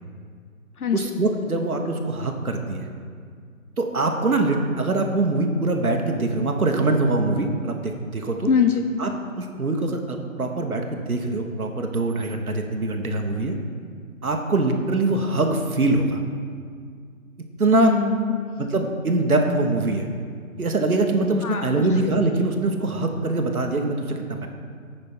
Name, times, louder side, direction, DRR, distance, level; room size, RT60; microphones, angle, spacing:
voice 1, 0.9-2.9 3.8-8.5 9.0-9.1 9.4-13.5 14.2-16.2 17.6-17.9 18.6-20.1 20.6-24.5, right 2 dB, 80° right, 3 dB, 1.1 m, -23 dB
voice 2, 8.5-8.9 17.7-18.4 21.4-21.8, left 6 dB, 85° left, 6 dB, 0.7 m, -22 dB
8.8 x 5.4 x 4.3 m, 2.1 s
figure-of-eight pair, 160°, 43 cm